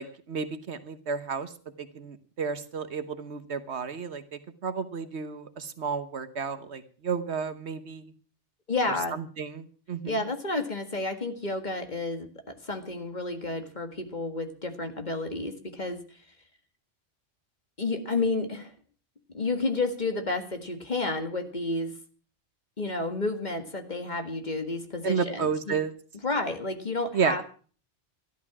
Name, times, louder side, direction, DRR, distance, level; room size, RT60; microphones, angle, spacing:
voice 1, 0.0-1.5 1.8-8.1 9.4-10.1 25.0-25.9 27.1-27.3, right 6 dB, 70° right, 11 dB, 1.4 m, -32 dB
voice 2, 8.7-9.2 10.0-12.3 12.6-16.0 17.8-18.7 19.3-21.9 22.8-25.8 26.2-27.4, left 2 dB, 40° left, 6 dB, 1.9 m, -31 dB
13.5 x 12.0 x 6.0 m, 0.41 s
omnidirectional pair, 1.2 m